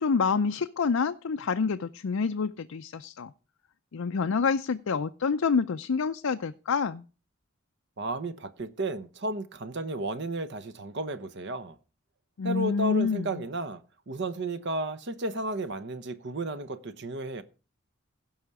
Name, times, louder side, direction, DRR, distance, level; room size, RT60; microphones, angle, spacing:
voice 1, 0.0-3.3 3.9-7.0 12.4-13.4, left 5 dB, 80° left, 0.5 m, -27 dB
voice 2, 8.0-11.8 12.4-17.4, right 2 dB, 55° right, 0.9 m, -33 dB
16.5 x 5.6 x 4.8 m
head